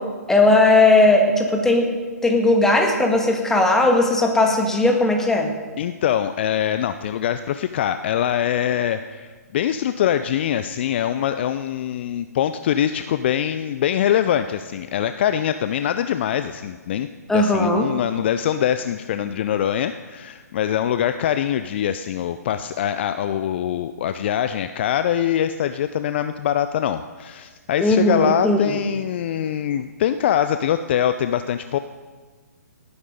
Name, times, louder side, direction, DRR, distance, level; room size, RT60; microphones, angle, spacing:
voice 1, 0.3-1.9 2.2-5.5 17.3-17.9 27.8-28.8, left 2 dB, 5° left, 1 dB, 1.7 m, -17 dB
voice 2, 5.8-17.1 17.3-31.8, left 10 dB, 40° left, 11 dB, 0.5 m, -23 dB
18.5 x 9.6 x 5.1 m, 1.5 s
figure-of-eight pair, 130°, 9 cm